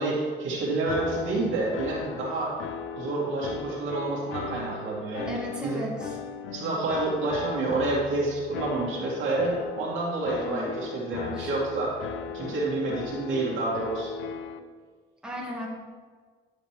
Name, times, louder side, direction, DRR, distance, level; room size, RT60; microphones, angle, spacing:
voice 1, 0.0-2.6 2.9-5.8 6.5-12.0 12.3-14.1, right 2 dB, 80° right, -4 dB, 2.2 m, -29 dB
sound 1, 0.9-14.6, left 7 dB, 85° left, 0.5 m, -38 dB
voice 2, 5.3-6.2 10.4-10.7 11.4-11.5 15.2-15.7, equal, 5° right, -3 dB, 1.5 m, -36 dB
10.0 x 5.1 x 3.2 m, 1.5 s
cardioid pair, 90°, 20 cm